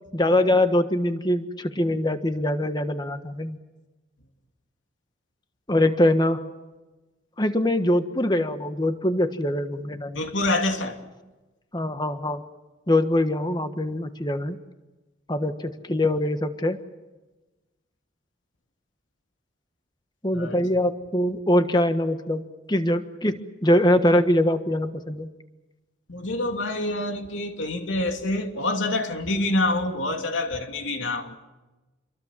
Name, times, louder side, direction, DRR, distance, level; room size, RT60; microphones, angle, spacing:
voice 1, 0.1-3.6 5.7-6.4 7.4-10.2 11.7-12.4 12.9-14.6 15.3-16.8 20.2-22.4 22.7-25.3, left 1 dB, 20° left, 1.4 m, -23 dB
voice 2, 10.1-11.0 20.3-20.6 26.1-31.4, left 2 dB, 85° left, 2.8 m, -26 dB
28.0 x 23.0 x 7.5 m
head